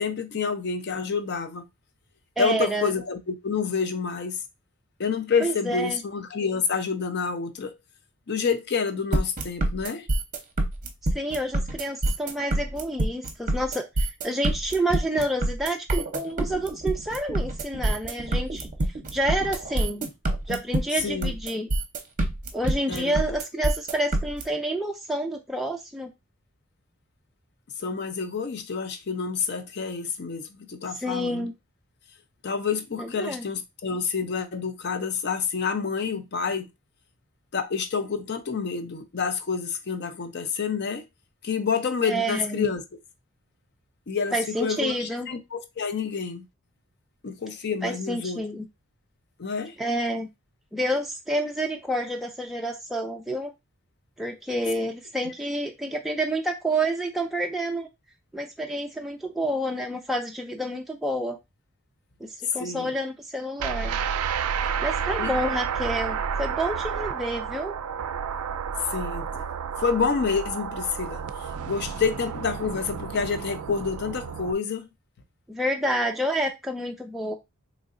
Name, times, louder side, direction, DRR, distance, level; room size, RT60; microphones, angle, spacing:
voice 1, 0.0-1.6 2.4-4.4 5.0-7.8 8.3-10.1 21.0-21.3 22.9-23.2 27.8-31.5 32.4-36.7 37.5-41.0 41.4-42.8 44.1-46.4 47.2-48.4 49.4-49.8 55.2-55.3 62.5-62.9 65.2-65.3 68.8-69.4 69.8-74.9, left 5 dB, 50° left, 0.5 m, -28 dB
voice 2, 2.4-2.9 5.4-6.0 11.1-13.9 14.2-18.7 19.1-20.1 20.5-21.7 22.5-26.1 31.0-31.5 33.0-33.4 42.1-42.7 44.3-45.3 47.8-48.7 49.8-50.3 50.7-53.5 54.2-57.9 58.3-61.4 62.2-64.0 64.6-67.8 75.5-77.3, right 1 dB, ahead, 0.3 m, -29 dB
sound 1, 9.1-24.4, right 1 dB, 35° right, 0.7 m, -26 dB
sound 2, 63.6-74.5, right 7 dB, 85° right, 0.3 m, -31 dB
3.8 x 3.1 x 2.5 m
head